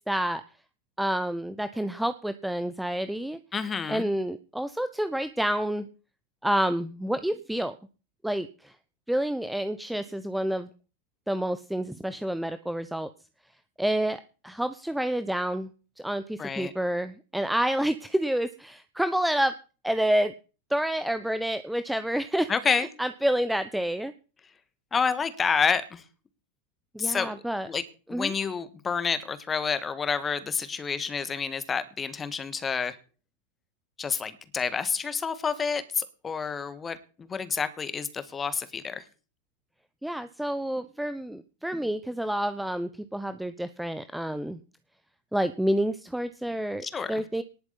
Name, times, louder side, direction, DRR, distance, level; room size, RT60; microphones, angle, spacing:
voice 1, 0.1-0.4 1.0-3.4 3.9-5.9 6.4-7.8 8.2-8.7 9.1-10.7 11.3-13.1 13.8-15.7 16.0-19.5 19.8-20.3 20.7-24.1 26.9-27.7 28.1-28.3 40.0-44.6 45.3-47.4, right 1 dB, ahead, 12 dB, 0.6 m, -28 dB
voice 2, 3.5-4.1 16.4-16.7 22.5-22.9 24.9-26.0 27.0-27.8 28.1-33.0 34.0-39.0 46.8-47.2, left 6 dB, 20° left, 13 dB, 1.6 m, -29 dB
19.0 x 7.9 x 4.2 m, 0.36 s
figure-of-eight pair, 90°, 0 cm